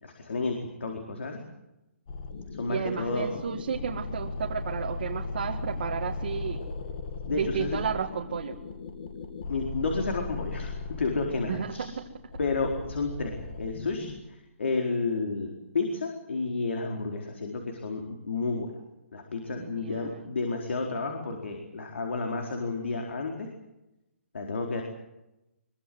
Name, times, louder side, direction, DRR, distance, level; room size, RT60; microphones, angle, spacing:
voice 1, 0.0-1.4 2.6-3.3 7.2-7.8 9.5-11.9 12.4-14.1 14.6-18.7 19.1-23.5 24.3-24.8, left 3 dB, 60° left, 2 dB, 4.4 m, -31 dB
sound 1, 2.1-14.2, left 3 dB, 35° left, 2.5 m, -38 dB
voice 2, 2.7-6.6 7.3-8.6 11.5-12.1 19.5-20.3, right 7 dB, 40° right, 0 dB, 1.9 m, -33 dB
23.5 x 23.0 x 7.9 m, 0.93 s
hypercardioid pair, 175°, 7 cm